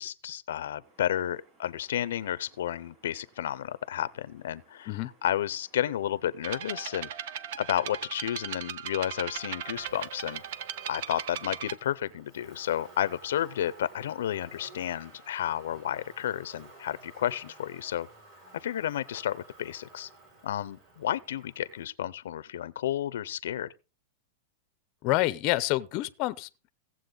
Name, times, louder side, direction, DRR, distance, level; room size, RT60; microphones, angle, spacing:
voice 1, 0.0-10.4 10.9-18.1 18.5-20.1 20.4-23.7, left 11 dB, 80° left, 0.6 m, -32 dB
sound 1, 0.8-8.2, right 2 dB, 20° right, 5.9 m, -64 dB
sound 2, 6.4-11.8, right 9 dB, 60° right, 0.7 m, -38 dB
Motor vehicle (road), 9.3-21.8, right 2 dB, 40° right, 5.4 m, -53 dB
voice 2, 25.0-26.7, left 18 dB, 40° left, 0.6 m, -28 dB
16.5 x 7.5 x 3.9 m
supercardioid pair, 160°, 0 cm